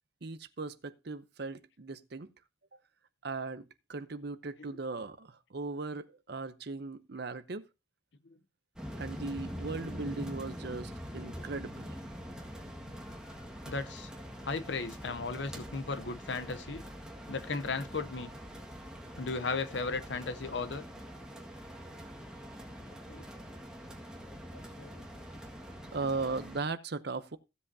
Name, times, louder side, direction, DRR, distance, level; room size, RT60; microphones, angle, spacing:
voice 1, 0.2-2.3 3.2-7.6 9.0-11.9 25.9-27.4, right 3 dB, 55° right, 0.7 m, -38 dB
sound 1, 8.8-26.6, equal, 5° right, 1.7 m, -44 dB
voice 2, 13.7-14.1 14.4-16.8 17.3-18.3 19.2-20.8 23.1-23.2 24.5-25.0, left 4 dB, 65° left, 0.8 m, -36 dB
15.5 x 7.7 x 2.7 m
head